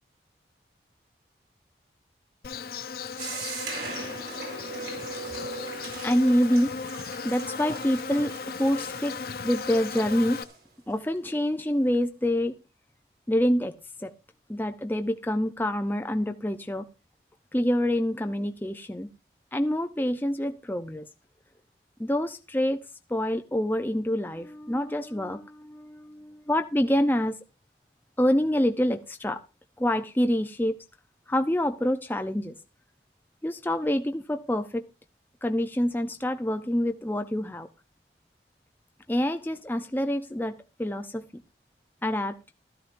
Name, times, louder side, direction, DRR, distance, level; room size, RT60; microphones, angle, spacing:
Insect, 2.4-10.4, left 5 dB, 55° left, 0.7 m, -36 dB
sound 1, 3.2-10.6, right 3 dB, 65° right, 4.3 m, -40 dB
voice 1, 6.0-6.7 7.2-9.2 9.4-10.4 10.9-12.6 13.3-13.8 14.0-14.1 14.5-16.9 17.5-19.1 19.5-21.1 22.0-22.8 23.1-27.4 28.2-29.4 29.8-30.8 31.3-32.6 33.4-34.8 35.4-37.7 39.1-41.4 42.0-42.4, equal, 10° left, 7 dB, 0.6 m, -26 dB
16.0 x 13.0 x 2.6 m, 0.29 s
head